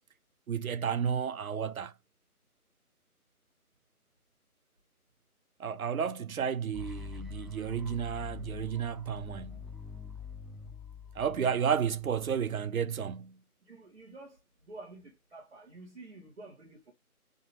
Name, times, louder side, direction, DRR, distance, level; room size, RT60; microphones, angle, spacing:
voice 1, 0.5-1.9 5.6-9.6 11.2-13.4, right 7 dB, 65° right, 0.6 m, -32 dB
sound 1, 6.7-12.7, left 6 dB, ahead, 0.4 m, -45 dB
voice 2, 13.7-16.9, right 2 dB, 45° right, 1.4 m, -50 dB
3.8 x 2.5 x 2.8 m
figure-of-eight pair, 175°, 45 cm